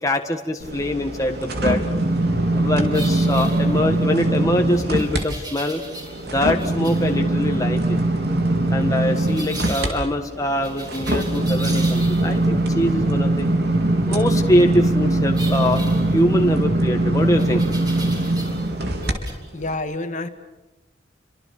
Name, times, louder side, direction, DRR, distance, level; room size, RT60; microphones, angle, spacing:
voice 1, 0.0-1.8 2.5-5.8 6.3-8.0 8.7-13.5 14.0-15.8 16.1-17.6, left 1 dB, 20° left, 3 dB, 1.6 m, -23 dB
sound 1, 0.6-5.2 5.6-19.1 19.6-19.7, right 1 dB, 60° right, 4.1 m, -22 dB
sound 2, 2.9-4.1 5.0-6.3 6.6-7.1 9.3-9.9 10.6-12.5 15.3-16.6 17.4-18.7 19.0-19.3, right 2 dB, 25° right, 5.8 m, -37 dB
voice 2, 19.5-20.3, left 2 dB, 45° left, 8 dB, 2.0 m, -28 dB
30.0 x 25.5 x 6.7 m, 0.99 s
head